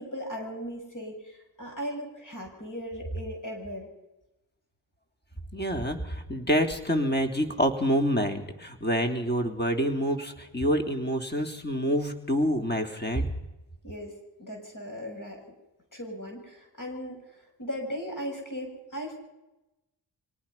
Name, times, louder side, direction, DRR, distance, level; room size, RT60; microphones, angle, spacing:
voice 1, 0.0-3.9 13.8-15.4 15.9-17.2 17.6-19.2, equal, 45° left, 1 dB, 7.2 m, -37 dB
voice 2, 5.5-13.3, equal, 20° left, 4 dB, 3.5 m, -27 dB
25.0 x 19.0 x 5.7 m, 0.98 s
supercardioid pair, 40°, 45 cm